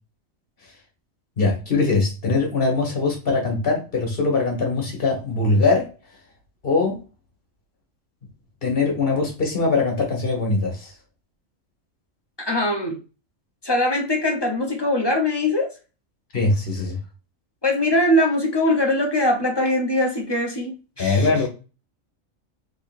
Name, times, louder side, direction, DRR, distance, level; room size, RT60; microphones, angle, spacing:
voice 1, 1.4-5.9 6.6-7.0 8.6-10.9 16.3-17.0 21.0-21.5, left 3 dB, 45° left, 1 dB, 1.4 m, -21 dB
voice 2, 12.4-13.0 13.6-15.7 17.6-21.3, left 1 dB, 25° left, 1 dB, 0.7 m, -21 dB
3.7 x 3.6 x 2.5 m, 0.32 s
omnidirectional pair, 1.4 m